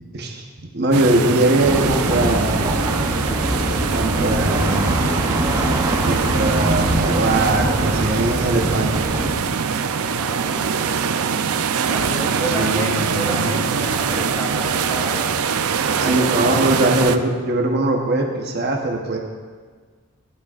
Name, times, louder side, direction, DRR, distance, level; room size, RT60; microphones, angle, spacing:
voice 1, 0.1-0.4 0.7-2.9 3.9-5.2 6.0-9.1 12.4-13.4 16.0-19.2, right 2 dB, 50° right, 1 dB, 1.0 m, -21 dB
sound 1, 0.9-17.2, right 6 dB, 90° right, 0.5 m, -23 dB
sound 2, 1.6-9.3, right 1 dB, 15° right, 0.7 m, -23 dB
voice 2, 10.0-11.4 11.9-15.4 15.9-17.1, equal, 10° left, -1 dB, 1.6 m, -30 dB
16.0 x 11.0 x 2.5 m, 1.5 s
head